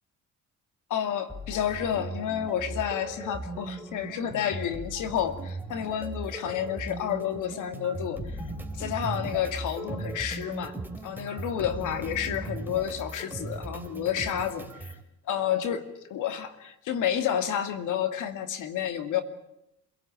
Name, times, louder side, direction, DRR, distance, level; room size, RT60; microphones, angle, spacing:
voice 1, 0.9-8.4 8.8-10.7 11.0-15.0 15.3-15.8 16.1-19.2, left 9 dB, 85° left, 8 dB, 2.4 m, -30 dB
sound 1, 1.3-15.0, right 2 dB, 5° right, 3.4 m, -38 dB
27.0 x 17.5 x 8.8 m, 0.83 s
cardioid pair, 90°, 30 cm